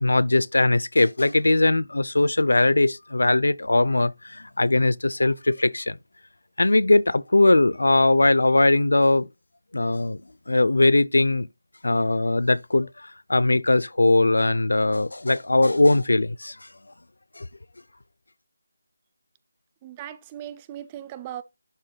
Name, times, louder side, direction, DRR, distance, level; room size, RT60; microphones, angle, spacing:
voice 1, 0.0-6.0 6.6-9.3 9.7-10.2 10.5-11.5 11.8-16.6 17.4-17.5, left 2 dB, 90° left, 0.4 m, -20 dB
voice 2, 19.8-21.4, right 11 dB, 15° right, 0.3 m, -38 dB
11.5 x 3.9 x 2.3 m
figure-of-eight pair, 175°, 0 cm